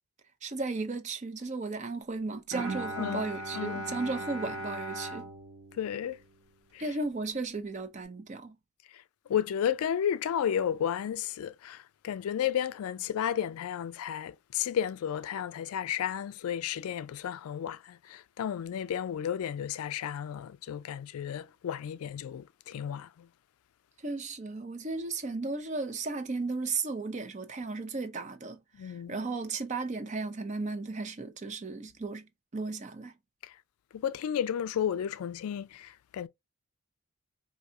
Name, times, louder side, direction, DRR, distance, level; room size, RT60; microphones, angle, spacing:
voice 1, 0.4-5.3 6.8-8.6 24.0-33.1, right 3 dB, 30° right, 0.5 m, -35 dB
Bowed string instrument, 2.5-6.7, right 1 dB, 50° right, 1.2 m, -39 dB
voice 2, 3.0-4.0 5.8-6.2 6.7-6.8 9.3-23.3 28.8-29.2 33.4-33.5 33.9-36.3, left 9 dB, 80° left, 0.3 m, -33 dB
4.6 x 2.7 x 2.7 m
head